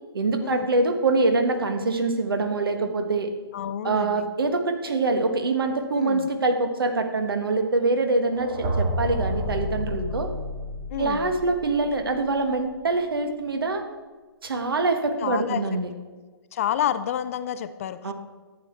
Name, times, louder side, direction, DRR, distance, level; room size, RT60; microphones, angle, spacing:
voice 1, 0.1-3.3 3.8-10.3 11.0-13.8 14.4-15.9 18.0-18.1, right 3 dB, 65° right, 6 dB, 1.3 m, -24 dB
voice 2, 3.5-4.2 5.9-6.3 10.9-11.3 15.2-15.6 16.5-18.1, left 10 dB, 35° left, 12 dB, 0.4 m, -29 dB
sound 1, 8.3-12.3, equal, 30° right, 1.8 m, -30 dB
11.0 x 8.2 x 4.4 m, 1.3 s
figure-of-eight pair, 125°, 13 cm